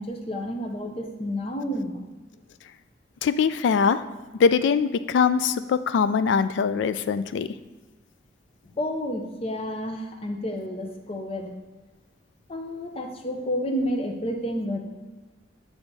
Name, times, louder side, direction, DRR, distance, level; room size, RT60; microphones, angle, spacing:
voice 1, 0.0-2.0 8.6-11.5 12.5-14.8, equal, 30° left, 4 dB, 0.6 m, -30 dB
voice 2, 3.2-4.0 4.4-7.5, left 6 dB, 70° left, 12 dB, 0.3 m, -22 dB
8.0 x 3.5 x 4.0 m, 1.2 s
head